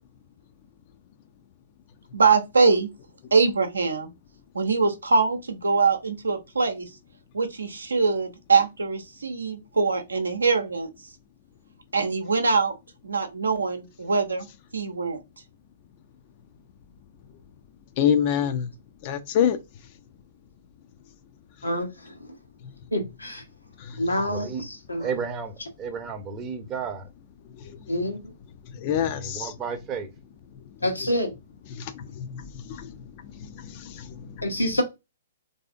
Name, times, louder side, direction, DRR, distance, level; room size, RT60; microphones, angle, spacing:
voice 1, 2.1-2.9 3.3-4.1 4.5-6.9 7.3-10.9 11.9-12.7 13.0-14.5 14.7-15.2, right 4 dB, 75° right, 0.7 m, -23 dB
voice 2, 18.0-18.7 19.0-19.6 23.8-24.0 27.6-27.8 28.7-29.5 31.8-32.9 33.4-34.5, left 9 dB, 40° left, 0.4 m, -27 dB
voice 3, 21.6-22.1 22.9-23.4 24.0-24.5 24.9-25.1 27.9-28.2 30.8-31.3 34.4-34.8, left 1 dB, 85° left, 0.9 m, -26 dB
voice 4, 24.3-24.6 25.0-27.1 28.9-30.1, right 5 dB, 25° right, 0.7 m, -33 dB
3.3 x 2.7 x 2.4 m
figure-of-eight pair, 115°, 0 cm